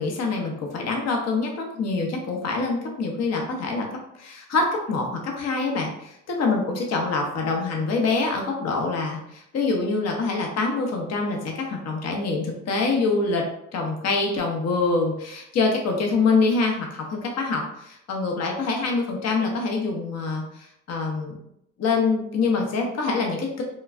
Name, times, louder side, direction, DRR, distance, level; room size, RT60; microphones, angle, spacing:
voice 1, 0.0-3.9 4.2-13.5 13.7-21.4 21.8-23.6, left 3 dB, 60° left, 1 dB, 0.7 m, -25 dB
3.1 x 2.2 x 2.4 m, 0.75 s
cardioid pair, 90°, 30 cm